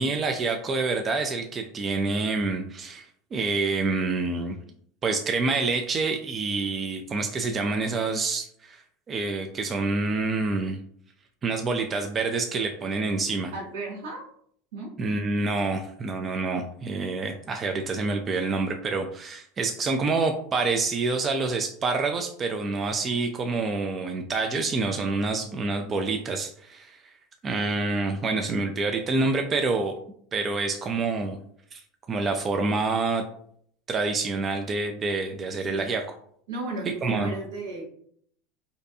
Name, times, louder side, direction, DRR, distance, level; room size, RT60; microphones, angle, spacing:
voice 1, 0.0-4.6 5.0-8.8 9.1-10.8 11.4-13.5 15.0-27.0 27.4-29.9 30.3-31.4 31.7-31.8 32.1-33.2 33.9-36.1 37.0-37.3, right 3 dB, 30° right, 4 dB, 0.3 m, -27 dB
voice 2, 13.5-14.2 14.7-14.9 35.7-35.9 36.5-37.9, right 2 dB, 75° right, -1 dB, 0.9 m, -34 dB
2.5 x 2.2 x 2.6 m, 0.64 s
hypercardioid pair, 95°, 0 cm